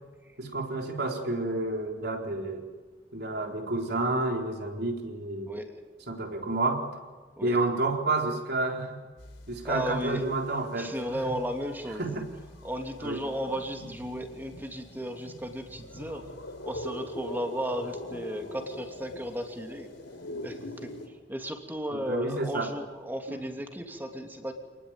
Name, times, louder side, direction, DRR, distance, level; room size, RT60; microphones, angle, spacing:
voice 1, 0.4-2.7 3.1-5.5 6.1-6.9 7.4-9.0 9.5-11.0 11.3-11.4 12.0-12.3 13.0-13.2 21.9-22.7 23.3-23.4, right 2 dB, 55° right, 2 dB, 4.0 m, -30 dB
sound 1, 9.2-10.7 11.0-21.1, left 1 dB, 80° left, 3.9 m, -43 dB
voice 2, 9.6-10.2 10.7-12.2 12.6-16.3 16.6-19.9 20.4-24.5, equal, 10° right, 4 dB, 2.9 m, -35 dB
28.5 x 20.0 x 9.0 m, 1.4 s
head